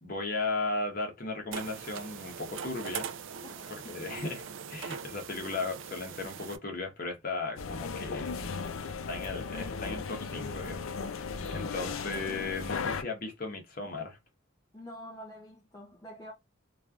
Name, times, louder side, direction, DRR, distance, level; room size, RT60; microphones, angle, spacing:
voice 1, 0.0-3.1 3.7-8.4 9.1-14.2, left 3 dB, 45° left, 1.0 m, -36 dB
sound 1, 1.5-6.6, right 7 dB, 65° right, 0.4 m, -41 dB
voice 2, 3.4-4.0 5.1-5.2 11.6-11.9 14.7-16.3, equal, 20° left, 0.4 m, -47 dB
sound 2, 7.6-13.0, left 5 dB, 80° left, 0.5 m, -36 dB
3.1 x 2.4 x 2.3 m
head